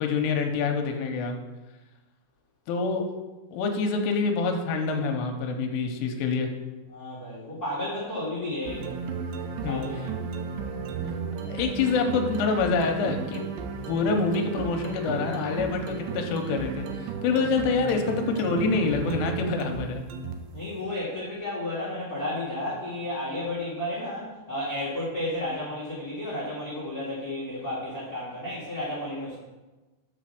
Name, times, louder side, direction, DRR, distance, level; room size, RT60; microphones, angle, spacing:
voice 1, 0.0-1.4 2.7-3.1 3.5-6.5 9.6-9.8 11.5-13.4 13.9-20.0, left 4 dB, 90° left, 4 dB, 3.2 m, -26 dB
voice 2, 6.9-9.0 9.7-10.1 20.5-29.4, left 1 dB, 70° left, -7 dB, 0.8 m, -32 dB
sound 1, 8.6-20.6, right 5 dB, 85° right, 2.5 m, -34 dB
8.6 x 4.2 x 6.4 m, 1.2 s
omnidirectional pair, 5.8 m